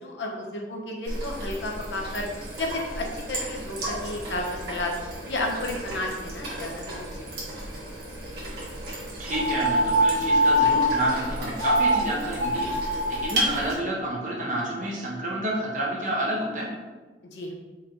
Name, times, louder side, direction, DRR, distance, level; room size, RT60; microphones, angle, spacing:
voice 1, 0.0-2.3 2.6-4.9 5.3-7.1 7.4-7.6 17.3-17.5, left 2 dB, 75° left, 0 dB, 0.9 m, -32 dB
sound 1, 1.0-13.7, right 1 dB, 65° right, 1.4 m, -34 dB
voice 2, 9.2-12.7 13.1-16.7, right 1 dB, 45° right, -4 dB, 1.0 m, -29 dB
sound 2, 9.3-11.1 11.6-12.0 12.3-13.2, equal, 85° right, 1.0 m, -22 dB
4.4 x 3.0 x 3.8 m, 1.3 s
head